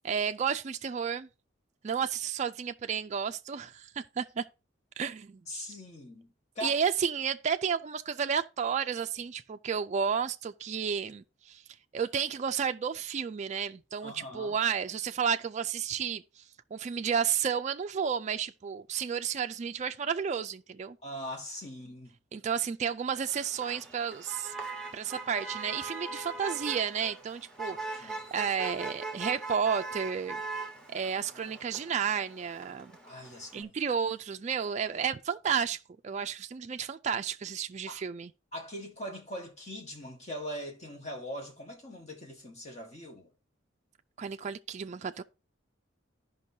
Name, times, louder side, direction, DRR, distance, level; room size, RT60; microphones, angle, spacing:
voice 1, 0.0-1.3 1.8-4.4 5.0-5.7 6.6-11.6 11.9-16.2 16.7-21.0 22.3-24.5 24.9-30.4 30.9-32.9 33.5-38.3 44.2-45.2, right 7 dB, 35° right, 0.3 m, -32 dB
voice 2, 5.5-6.3 6.5-6.8 14.0-14.5 21.0-22.1 27.7-28.5 29.1-29.3 33.0-33.7 37.9-38.0 38.5-43.3, equal, 35° left, 1.4 m, -41 dB
Motor vehicle (road), 23.1-33.6, right 3 dB, 5° left, 1.3 m, -41 dB
13.5 x 5.3 x 2.7 m
head